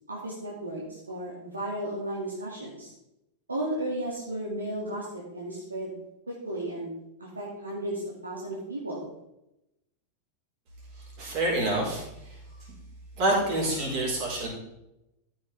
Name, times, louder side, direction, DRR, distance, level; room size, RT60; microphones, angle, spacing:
voice 1, 0.1-2.9 3.5-5.9 6.3-6.9 7.2-9.1, right 1 dB, 80° right, -5 dB, 2.3 m, -34 dB
voice 2, 11.0-12.7 13.2-14.5, right 1 dB, 45° right, -3 dB, 4.4 m, -28 dB
13.5 x 7.0 x 3.5 m, 0.88 s
figure-of-eight pair, 90°, 0 cm